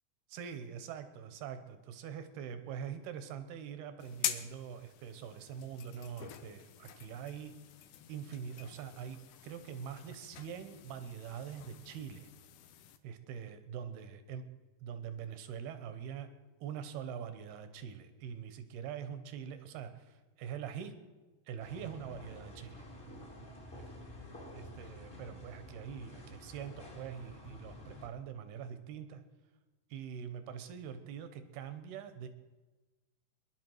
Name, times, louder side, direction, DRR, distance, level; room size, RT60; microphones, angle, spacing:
voice 1, 0.3-7.5 8.1-9.2 9.4-12.3 13.0-14.4 14.8-16.3 16.6-20.9 21.5-22.9 23.7-23.9 24.5-29.2 29.9-32.3, right 8 dB, 80° right, 10 dB, 2.9 m, -44 dB
sound 1, 4.0-13.0, left 11 dB, 85° left, 1.7 m, -45 dB
sound 2, 21.6-28.1, equal, 25° left, 1.4 m, -50 dB
21.5 x 11.0 x 4.7 m, 1.2 s
omnidirectional pair, 4.6 m